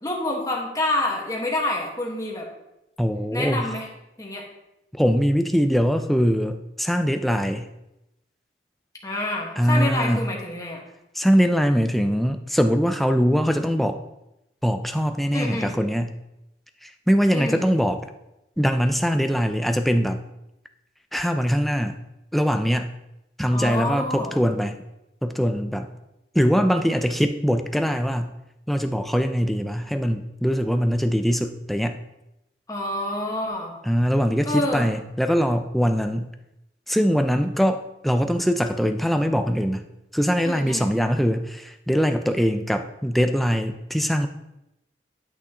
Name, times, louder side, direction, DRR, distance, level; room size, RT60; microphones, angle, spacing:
voice 1, 0.0-2.5 3.3-3.9 4.2-4.4 9.0-10.8 15.3-15.7 17.3-17.7 23.5-24.3 32.7-33.8 34.4-34.9 40.4-40.9, left 1 dB, 20° left, -1 dB, 1.4 m, -27 dB
voice 2, 3.0-3.7 4.9-7.7 9.6-10.3 11.2-14.0 14.6-16.1 16.8-18.0 18.6-20.2 21.1-22.0 22.3-22.9 23.4-24.8 25.2-25.9 26.3-28.3 28.7-32.0 33.8-36.3 36.9-39.9 40.1-44.3, equal, ahead, 7 dB, 0.4 m, -22 dB
11.0 x 6.2 x 2.9 m, 0.89 s
head